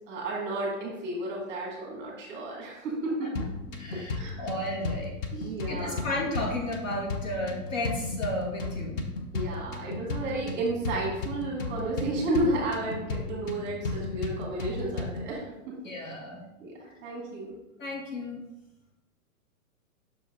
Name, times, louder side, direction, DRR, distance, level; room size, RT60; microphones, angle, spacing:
voice 1, 0.1-3.4 3.9-4.5 5.3-6.1 9.3-15.7 16.6-17.6, right 2 dB, 25° right, -2 dB, 1.9 m, -32 dB
sound 1, 3.4-15.4, left 3 dB, 35° left, 0.7 m, -35 dB
voice 2, 3.8-5.1 5.4-9.0 15.8-16.4 17.8-18.4, left 1 dB, 60° left, -1 dB, 1.9 m, -33 dB
6.1 x 4.4 x 3.7 m, 0.98 s
hypercardioid pair, 145°, 44 cm